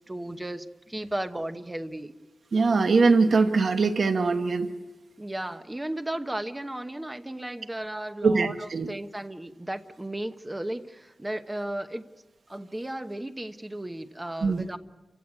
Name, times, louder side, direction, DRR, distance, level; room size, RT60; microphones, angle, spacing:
voice 1, 0.0-2.1 5.2-8.5 8.9-12.1 12.5-14.8, right 1 dB, 15° right, 9 dB, 1.0 m, -35 dB
voice 2, 2.5-4.7 8.2-8.9 14.4-14.6, right 4 dB, 55° right, 7 dB, 1.3 m, -22 dB
29.0 x 16.0 x 9.7 m, 1.2 s
wide cardioid pair, 155°, 0 cm